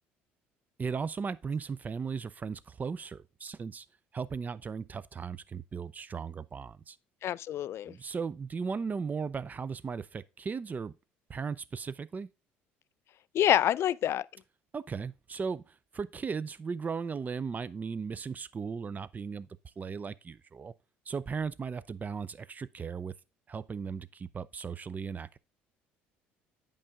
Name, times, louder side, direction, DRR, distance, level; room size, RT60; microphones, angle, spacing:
voice 1, 0.8-3.9 4.1-7.0 7.8-10.9 11.3-12.3 14.7-19.5 19.8-20.7 21.1-23.1 23.5-25.4, right 5 dB, 30° right, 0.5 m, -37 dB
voice 2, 7.2-7.9 13.3-14.3, left 11 dB, 55° left, 0.3 m, -27 dB
8.7 x 5.4 x 3.5 m
supercardioid pair, 75°, 5 cm